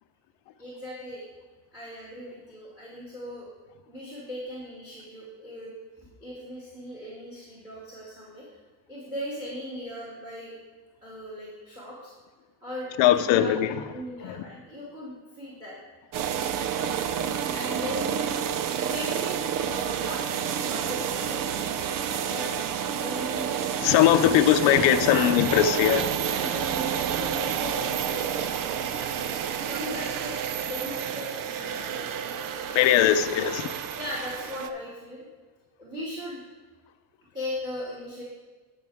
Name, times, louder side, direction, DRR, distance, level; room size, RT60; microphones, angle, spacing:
voice 1, 0.6-1.2 1.7-3.5 3.9-5.7 6.2-8.4 8.9-10.5 11.0-12.1 12.6-13.5 13.9-15.7 17.5-18.3 18.8-22.5 23.0-23.5 24.3-24.5 24.9-25.3 26.1-30.4 30.7-33.0 34.0-35.2 35.8-36.4 37.3-38.2, left 1 dB, 5° right, -6 dB, 2.6 m, -38 dB
voice 2, 13.0-13.7 14.2-14.4 23.8-26.1 32.7-33.7, left 11 dB, 60° left, 8 dB, 0.8 m, -20 dB
sound 1, 16.1-34.7, right 8 dB, 40° right, 0.6 m, -30 dB
15.5 x 5.8 x 3.6 m, 1.3 s
cardioid pair, 120°, 50 cm